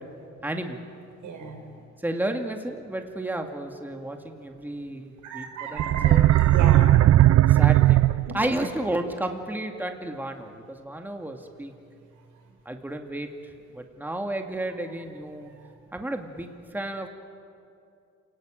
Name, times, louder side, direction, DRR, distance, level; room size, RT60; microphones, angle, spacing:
voice 1, 0.4-0.8 2.0-6.3 7.5-8.1 8.3-11.7 12.7-13.3 13.7-15.5 15.9-17.1, right 1 dB, 5° right, 4 dB, 2.1 m, -32 dB
voice 2, 1.2-1.8 5.2-7.0 15.6-15.7, right 5 dB, 80° right, 4 dB, 4.3 m, -34 dB
sound 1, 5.8-8.6, right 14 dB, 55° right, 0.5 m, -17 dB
28.0 x 19.0 x 9.1 m, 2.6 s
cardioid pair, 90°, 30 cm